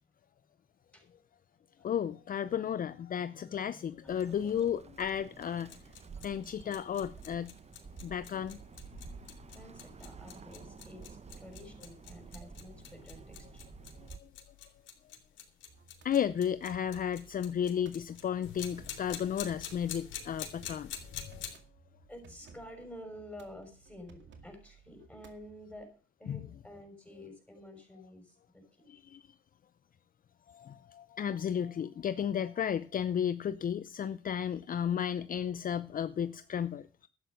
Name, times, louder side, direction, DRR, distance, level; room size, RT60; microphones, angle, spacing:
voice 1, 1.8-5.8 6.2-7.5 8.0-8.6 14.0-14.3 16.0-21.5 26.3-26.4 28.9-29.3 30.5-37.1, left 8 dB, 45° left, 0.6 m, -33 dB
voice 2, 3.1-4.1 6.0-6.5 9.5-13.5 22.1-25.9 26.2-28.6 34.8-35.0, left 1 dB, 5° left, 6.2 m, -50 dB
Bird, 4.1-14.2, right 6 dB, 35° right, 0.8 m, -51 dB
sound 1, 5.5-21.6, left 9 dB, 75° left, 3.3 m, -47 dB
sound 2, 15.7-25.8, right 5 dB, 65° right, 2.2 m, -58 dB
12.0 x 9.0 x 6.5 m
cardioid pair, 90°, 20 cm